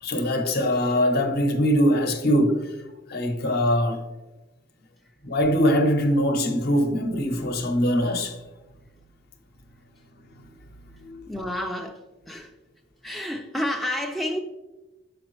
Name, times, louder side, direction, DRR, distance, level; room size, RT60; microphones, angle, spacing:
voice 1, 0.0-2.8 3.1-4.0 5.2-8.4 10.2-11.2, equal, 55° left, 0.7 m, -23 dB
voice 2, 11.3-12.5 13.0-14.4, left 1 dB, ahead, 0.3 m, -30 dB
6.7 x 5.0 x 3.0 m
head